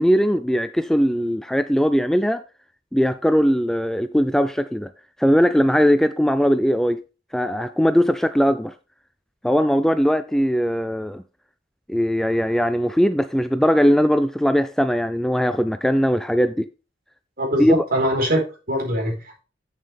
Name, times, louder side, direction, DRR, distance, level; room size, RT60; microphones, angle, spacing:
voice 1, 0.0-2.4 2.9-4.9 5.2-7.0 7.3-8.7 9.4-11.2 11.9-16.7 17.6-17.8, equal, 5° left, 0.3 m, -19 dB
voice 2, 17.4-19.4, equal, 55° right, 4.3 m, -23 dB
8.2 x 7.5 x 3.4 m
head